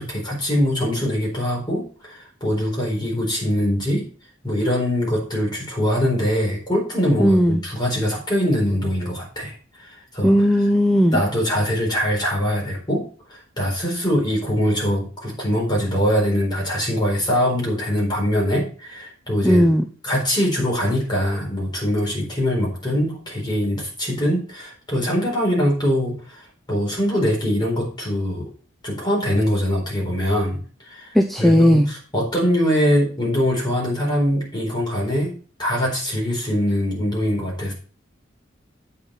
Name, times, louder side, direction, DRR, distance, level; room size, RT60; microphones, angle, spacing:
voice 1, 0.0-4.1 4.4-9.5 9.8-10.3 11.1-13.0 13.3-19.7 20.0-26.4 26.7-28.5 28.8-35.3 35.6-37.7, equal, 20° left, -2 dB, 4.2 m, -22 dB
voice 2, 7.2-7.6 10.2-11.2 19.4-19.8 31.1-31.9, equal, ahead, 5 dB, 0.6 m, -16 dB
8.5 x 5.8 x 5.8 m, 0.40 s
head